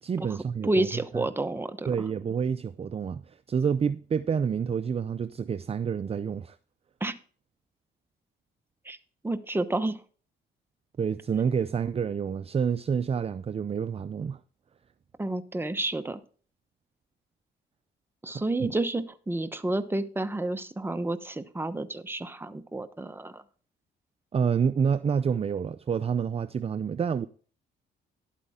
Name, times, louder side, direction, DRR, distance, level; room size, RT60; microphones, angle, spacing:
voice 1, 0.0-0.9 1.1-1.3 1.9-6.6 11.0-14.4 18.6-18.7 24.3-27.3, right 6 dB, 30° right, 0.5 m, -28 dB
voice 2, 0.6-1.9 7.0-7.1 8.8-9.0 9.2-10.0 15.2-16.2 18.2-23.4, right 2 dB, 10° right, 1.0 m, -30 dB
11.5 x 8.4 x 3.6 m
cardioid pair, 90°, 20 cm